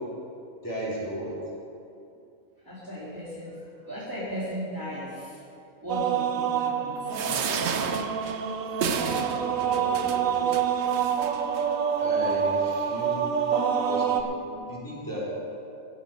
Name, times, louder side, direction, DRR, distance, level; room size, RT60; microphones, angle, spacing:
voice 1, 0.6-1.4 9.1-10.6 12.0-13.5 13.9-15.3, equal, 15° left, -6 dB, 3.3 m, -36 dB
voice 2, 2.6-5.4 5.8-7.5, equal, 15° right, -10 dB, 2.4 m, -36 dB
sound 1, 5.9-14.2, right 7 dB, 80° right, 1.2 m, -27 dB
sound 2, 7.1-11.7 12.3-12.4 12.7-12.8, right 6 dB, 60° right, 1.0 m, -32 dB
16.5 x 9.0 x 5.1 m, 2.6 s
omnidirectional pair, 1.4 m